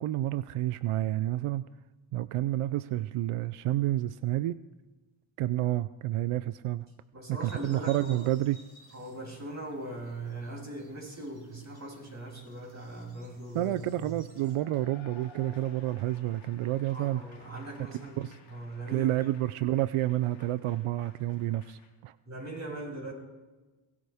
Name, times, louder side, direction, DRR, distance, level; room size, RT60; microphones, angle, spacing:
voice 1, 0.0-1.7 2.1-4.6 5.4-6.9 7.3-8.6 13.5-17.2 18.2-18.4 18.9-22.1, right 15 dB, 90° right, 15 dB, 0.5 m, -29 dB
voice 2, 7.1-8.3 8.9-14.2 16.9-19.3 22.3-23.1, right 1 dB, 35° right, -1 dB, 7.1 m, -40 dB
sound 1, 7.4-14.6, right 1 dB, 50° right, 4.1 m, -59 dB
Cheering / Applause / Crowd, 14.3-21.9, left 4 dB, 65° left, 3.4 m, -56 dB
22.5 x 18.0 x 3.5 m, 1.2 s
cardioid pair, 70°, 49 cm